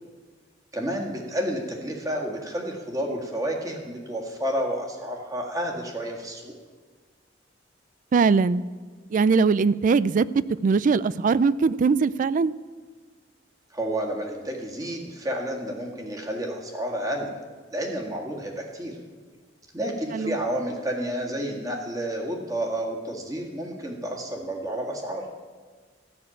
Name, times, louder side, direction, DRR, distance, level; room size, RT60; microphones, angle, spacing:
voice 1, 0.7-6.5 13.7-17.3 17.7-19.0 19.7-25.3, right 1 dB, 20° right, 0 dB, 1.8 m, -30 dB
voice 2, 8.1-8.6 9.1-12.5 20.1-20.4, right 5 dB, 45° right, 19 dB, 0.3 m, -21 dB
13.5 x 6.4 x 8.6 m, 1.5 s
head